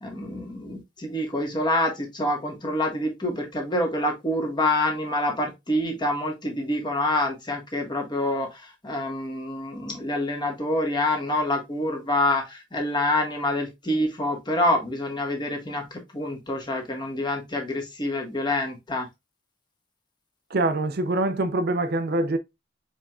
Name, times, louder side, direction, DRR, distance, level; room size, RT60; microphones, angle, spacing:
voice 1, 0.0-8.5 8.8-12.4 12.7-15.8 16.1-19.0, left 1 dB, 25° left, 1.5 m, -26 dB
voice 2, 20.5-22.4, right 2 dB, 55° right, 0.6 m, -24 dB
4.8 x 4.6 x 2.4 m
head